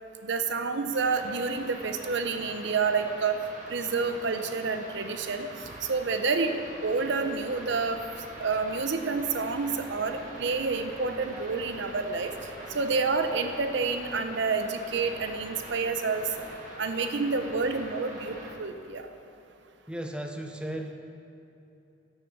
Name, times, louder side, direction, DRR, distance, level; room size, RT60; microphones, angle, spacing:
voice 1, 0.2-3.4 3.7-6.5 6.8-8.0 8.4-12.3 12.7-16.2 16.8-19.0, right 4 dB, 65° right, 7 dB, 0.7 m, -29 dB
sound 1, 0.9-18.5, right 1 dB, 40° right, 2.0 m, -44 dB
voice 2, 19.9-20.9, right 1 dB, 5° right, 4 dB, 0.6 m, -35 dB
12.0 x 6.8 x 6.0 m, 2.9 s
head